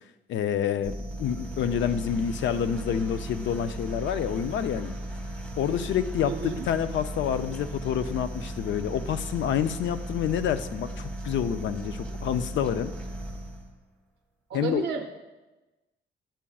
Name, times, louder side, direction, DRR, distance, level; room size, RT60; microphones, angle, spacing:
voice 1, 0.3-0.9 1.2-4.9 5.6-12.9 14.5-14.9, left 9 dB, 75° left, 12 dB, 0.4 m, -28 dB
sound 1, 0.8-13.8, right 1 dB, 10° left, 0.9 m, -37 dB
voice 2, 6.2-6.7 14.5-15.1, right 6 dB, 65° right, 3 dB, 0.5 m, -32 dB
10.0 x 8.5 x 2.3 m, 1.1 s
wide cardioid pair, 165°, 19 cm